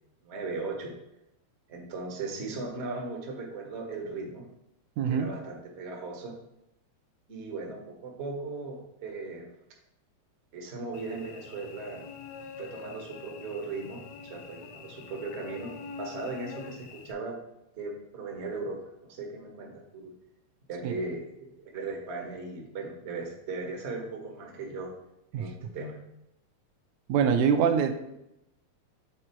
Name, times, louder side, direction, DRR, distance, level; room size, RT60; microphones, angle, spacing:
voice 1, 0.2-0.9 1.7-4.4 5.1-6.3 7.3-9.5 10.5-12.0 12.6-15.7 16.0-17.4 17.8-20.1 20.7-24.9 25.4-26.0, right 3 dB, 65° right, 1 dB, 0.6 m, -37 dB
voice 2, 5.0-5.3 20.8-20.9 25.3-25.5 27.1-27.9, right 7 dB, 85° right, 7 dB, 1.9 m, -24 dB
Cricket / Buzz, 10.9-17.1, left 5 dB, 80° left, 1.7 m, -45 dB
7.9 x 3.7 x 4.4 m, 0.84 s
omnidirectional pair, 3.3 m